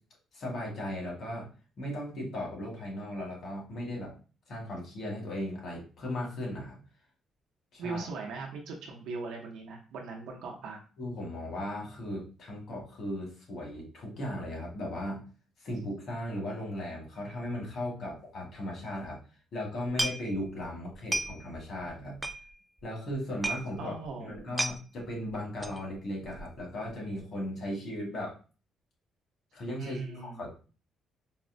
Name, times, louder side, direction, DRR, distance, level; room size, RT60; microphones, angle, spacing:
voice 1, 0.3-1.5 1.8-4.1 4.5-6.8 7.7-8.1 11.0-15.2 15.6-19.2 19.5-22.1 22.8-23.9 24.2-28.3 29.5-30.5, left 1 dB, 60° left, -2 dB, 1.6 m, -37 dB
voice 2, 7.8-10.8 23.8-24.7 29.8-30.4, right 4 dB, 85° right, 0 dB, 0.7 m, -39 dB
sound 1, 20.0-20.6 20.9-21.6 21.9-22.0 22.2-22.8 23.1-23.2 23.4-23.7 24.1-24.2 24.3-24.8 25.6-25.9 26.2-26.6 26.9-27.0, right 1 dB, 10° right, 0.3 m, -33 dB
4.0 x 2.0 x 2.6 m, 0.36 s
cardioid pair, 105°, 0 cm